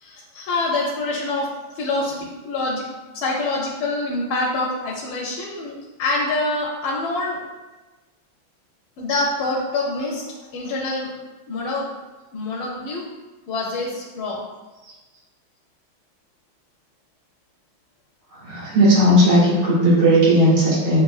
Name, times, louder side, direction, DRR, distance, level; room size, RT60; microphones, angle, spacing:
voice 1, 0.0-1.5 1.8-2.2 2.4-2.8 3.1-7.4 9.0-11.1 11.5-11.9 12.3-13.0 13.5-14.4, left 2 dB, 85° left, -3 dB, 1.5 m, -25 dB
voice 2, 18.4-21.0, equal, 75° right, -9 dB, 2.6 m, -16 dB
7.3 x 2.5 x 2.4 m, 1.2 s
omnidirectional pair, 2.3 m